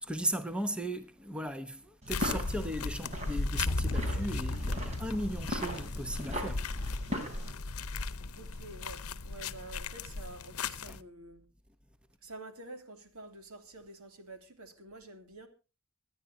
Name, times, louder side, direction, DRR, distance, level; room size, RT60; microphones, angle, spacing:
voice 1, 0.0-6.7 10.9-11.0, right 1 dB, 5° right, 0.9 m, -37 dB
sound 1, 2.0-7.5, left 1 dB, 30° right, 3.5 m, -39 dB
sound 2, 2.1-11.0, left 4 dB, 90° left, 0.8 m, -38 dB
sound 3, 3.5-7.5, left 1 dB, 60° left, 0.8 m, -37 dB
voice 2, 8.4-11.4 12.2-15.5, right 2 dB, 85° right, 2.8 m, -48 dB
24.5 x 10.0 x 2.7 m
head